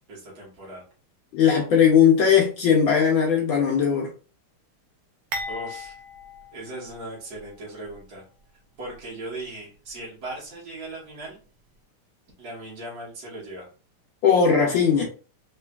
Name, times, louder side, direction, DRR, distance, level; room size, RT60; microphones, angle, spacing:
voice 1, 0.1-0.8 5.5-6.0 6.5-8.2 8.8-11.4 12.4-13.7, right 1 dB, 50° right, 1.6 m, -38 dB
voice 2, 1.3-4.1 14.2-15.0, left 7 dB, 70° left, 1.4 m, -18 dB
sound 1, 5.3-7.5 7.8-8.0 8.9-9.0, left 1 dB, 65° right, 1.1 m, -37 dB
3.8 x 3.2 x 2.3 m
omnidirectional pair, 2.4 m